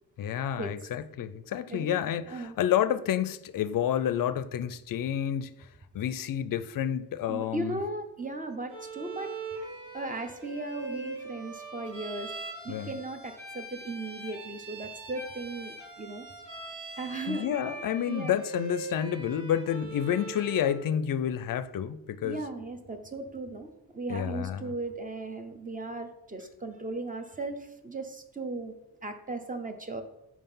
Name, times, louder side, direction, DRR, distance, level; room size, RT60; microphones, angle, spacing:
voice 1, 0.2-5.5 5.9-7.8 12.7-13.0 17.3-22.4 24.1-24.7, left 10 dB, 55° left, 0.5 m, -29 dB
voice 2, 1.7-2.0 2.3-2.6 7.3-9.3 9.9-12.3 12.6-16.3 17.0-17.6 18.1-18.4 22.2-28.7 29.0-30.0, right 2 dB, 20° right, 0.7 m, -37 dB
Bowed string instrument, 8.7-20.8, right 3 dB, 80° right, 2.6 m, -42 dB
5.6 x 4.8 x 5.5 m
wide cardioid pair, 160°, 41 cm